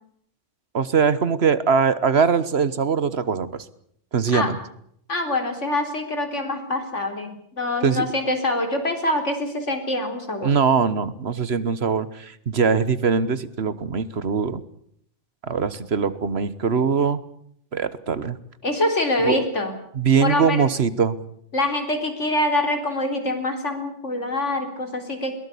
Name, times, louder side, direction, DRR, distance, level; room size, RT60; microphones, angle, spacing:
voice 1, 0.7-3.6 4.1-4.6 7.8-8.1 10.4-14.6 15.4-17.2 17.7-18.4 19.2-19.4 19.9-21.2, right 6 dB, 60° right, 15 dB, 1.4 m, -22 dB
voice 2, 5.1-10.6 18.6-19.8 20.2-20.7 21.5-25.3, left 1 dB, 85° left, 5 dB, 4.2 m, -25 dB
22.0 x 19.0 x 8.4 m, 0.68 s
omnidirectional pair, 1.2 m